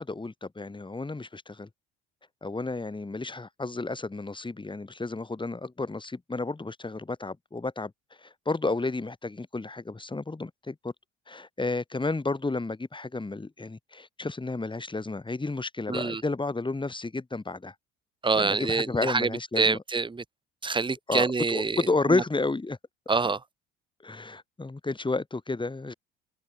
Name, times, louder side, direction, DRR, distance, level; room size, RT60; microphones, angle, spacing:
voice 1, 0.0-1.7 2.4-7.9 8.2-10.9 11.3-17.7 18.4-19.8 21.1-22.8 24.0-25.9, left 3 dB, 15° left, 3.6 m, -31 dB
voice 2, 15.9-16.2 18.2-20.2 20.6-21.8 22.1-22.2 23.1-23.4, right 4 dB, 15° right, 1.1 m, -26 dB
hypercardioid pair, 60°, 30 cm